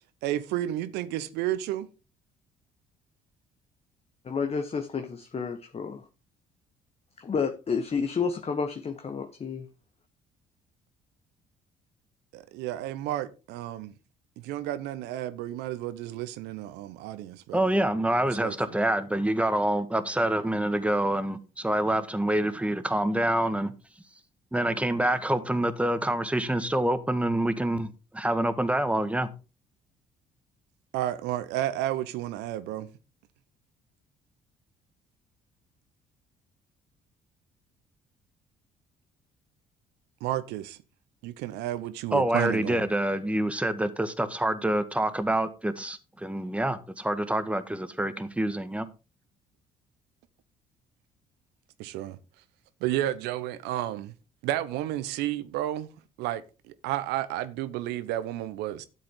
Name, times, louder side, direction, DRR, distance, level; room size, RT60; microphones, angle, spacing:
voice 1, 0.2-1.9 12.3-13.9 14.4-17.6 18.4-18.5 30.9-32.9 40.2-40.8 41.2-42.8 51.8-52.2 52.8-54.1 54.4-55.9 56.2-58.9, right 13 dB, 70° right, 1.0 m, -31 dB
voice 2, 4.2-6.0 7.2-9.6, left 5 dB, 35° left, 1.3 m, -30 dB
voice 3, 17.5-24.2 24.5-29.3 42.1-48.9, right 1 dB, 5° right, 1.7 m, -27 dB
12.5 x 7.7 x 3.8 m
hypercardioid pair, 50°, 18 cm